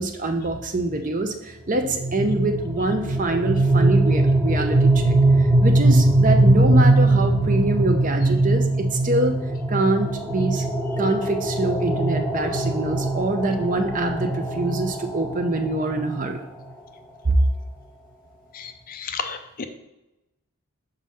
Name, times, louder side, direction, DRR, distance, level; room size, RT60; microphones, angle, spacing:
voice 1, 0.0-9.4 9.7-10.6 11.0-16.4 17.2-17.4, right 2 dB, 35° right, 5 dB, 0.7 m, -25 dB
sound 1, 1.8-16.7, right 2 dB, 5° right, 0.8 m, -21 dB
voice 2, 19.0-19.6, left 5 dB, 40° left, 8 dB, 0.5 m, -31 dB
6.2 x 4.0 x 5.5 m, 0.94 s
head